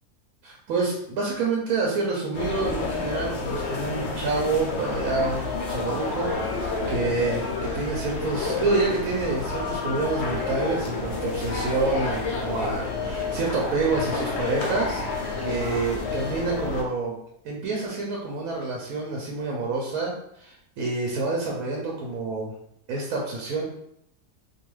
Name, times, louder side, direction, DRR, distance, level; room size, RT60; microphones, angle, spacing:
voice 1, 0.4-6.3 6.5-15.0 15.4-17.2 17.4-22.5 22.9-23.6, right 3 dB, 75° right, -2 dB, 1.0 m, -28 dB
sound 1, 2.3-16.8, left 3 dB, 65° left, 0.7 m, -29 dB
2.5 x 2.3 x 3.0 m, 0.74 s
omnidirectional pair, 1.6 m